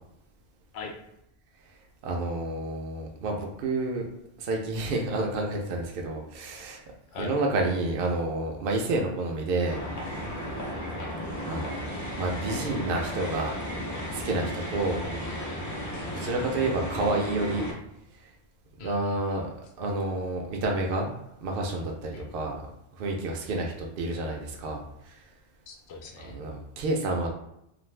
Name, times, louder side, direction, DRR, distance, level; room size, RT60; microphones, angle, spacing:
voice 1, 2.0-4.0 4.4-6.8 7.2-9.8 10.1-10.2 11.5-13.6 14.1-15.0 16.1-17.7 18.8-19.5 19.8-21.1 21.4-22.6 23.0-24.8 26.3-27.3, right 2 dB, 65° right, 1 dB, 0.7 m, -29 dB
sound 1, 9.7-17.7, left 1 dB, 20° left, 0.5 m, -34 dB
voice 2, 15.0-15.6 18.8-19.4 22.1-22.4 25.7-26.4, left 3 dB, 80° left, 2 dB, 0.8 m, -42 dB
2.5 x 2.4 x 3.1 m, 0.80 s
omnidirectional pair, 1.1 m